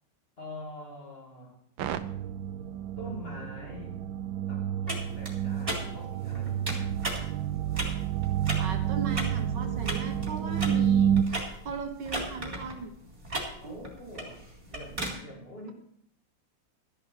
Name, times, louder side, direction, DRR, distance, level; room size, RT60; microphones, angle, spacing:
voice 1, 0.4-1.6 3.0-4.1 4.5-7.0 13.6-15.7, left 1 dB, 30° left, 2.8 m, -44 dB
sound 1, 1.8-11.2, right 9 dB, 90° right, 1.5 m, -29 dB
sound 2, 4.9-15.1, right 1 dB, 30° right, 3.3 m, -37 dB
voice 2, 8.6-11.1 11.6-12.9, right 4 dB, 70° right, 1.8 m, -37 dB
13.0 x 11.0 x 4.5 m
omnidirectional pair, 2.1 m